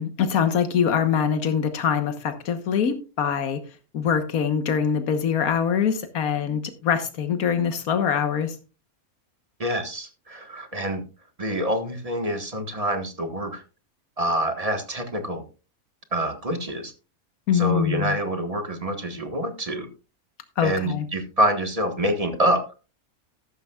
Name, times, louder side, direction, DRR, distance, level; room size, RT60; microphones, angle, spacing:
voice 1, 0.0-3.6 3.9-8.5 17.5-18.2 20.6-21.0, left 7 dB, 90° left, 9 dB, 1.6 m, -23 dB
voice 2, 9.6-11.0 11.4-13.6 14.2-15.4 16.1-16.9 17.5-19.9 20.6-22.6, right 1 dB, 25° right, 7 dB, 1.4 m, -26 dB
13.5 x 12.0 x 2.3 m, 0.32 s
omnidirectional pair, 1.5 m